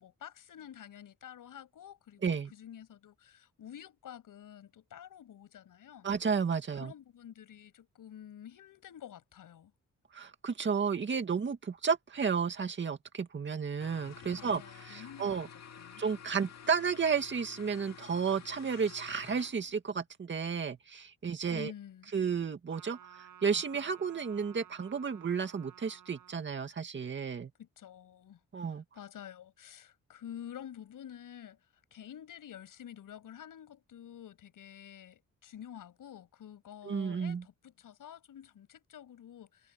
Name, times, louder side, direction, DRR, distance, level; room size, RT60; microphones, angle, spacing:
voice 1, 0.0-6.1 6.7-9.7 14.4-15.4 15.7-16.0 21.5-22.1 27.6-31.7 31.9-39.7, left 10 dB, 80° left, 7.0 m, -49 dB
voice 2, 6.0-6.9 10.1-15.5 16.0-21.7 22.1-27.5 28.5-28.8 36.9-37.4, right 6 dB, 35° right, 2.1 m, -32 dB
sound 1, 13.8-19.7, left 7 dB, 55° left, 2.1 m, -51 dB
Trumpet, 22.7-26.4, right 10 dB, 75° right, 7.3 m, -55 dB
wide cardioid pair, 160°, 32 cm